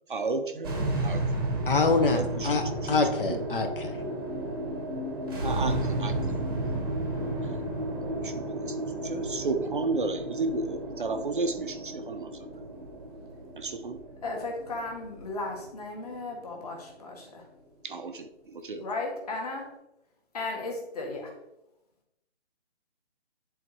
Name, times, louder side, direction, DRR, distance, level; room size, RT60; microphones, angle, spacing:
voice 1, 0.1-1.4 2.1-3.4 5.4-6.8 7.4-7.5 8.0-12.5 13.6-14.0 17.8-18.9, right 3 dB, 50° right, 8 dB, 0.5 m, -33 dB
sound 1, 0.6-17.0, right 1 dB, 20° right, 0.9 m, -33 dB
voice 2, 1.7-4.0, left 3 dB, 50° left, 5 dB, 0.8 m, -26 dB
voice 3, 14.2-17.4 18.8-19.7 20.3-21.3, left 2 dB, 35° left, 0 dB, 1.6 m, -35 dB
10.0 x 3.9 x 3.1 m, 0.87 s
hypercardioid pair, 165°, 34 cm